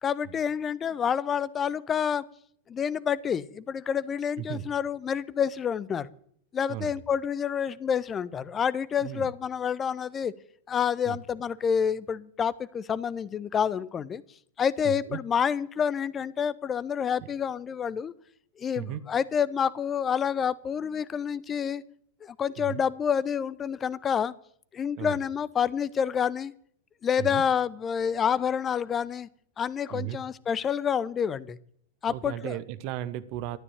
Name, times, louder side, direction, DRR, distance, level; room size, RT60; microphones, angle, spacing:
voice 1, 0.0-2.2 2.7-6.1 6.5-10.3 10.7-14.2 14.6-18.1 18.6-21.8 22.2-24.3 24.7-26.5 27.0-29.3 29.6-31.6 32.0-32.6, left 7 dB, 25° left, 19 dB, 0.7 m, -28 dB
voice 2, 6.7-7.0 9.0-9.3 11.0-11.2 14.8-15.2 18.7-19.0 22.6-22.8 25.0-25.2 27.2-27.4 29.9-30.2 32.1-33.6, right 12 dB, 45° right, 14 dB, 1.0 m, -35 dB
13.0 x 9.7 x 9.1 m, 0.63 s
figure-of-eight pair, 90°, 0 cm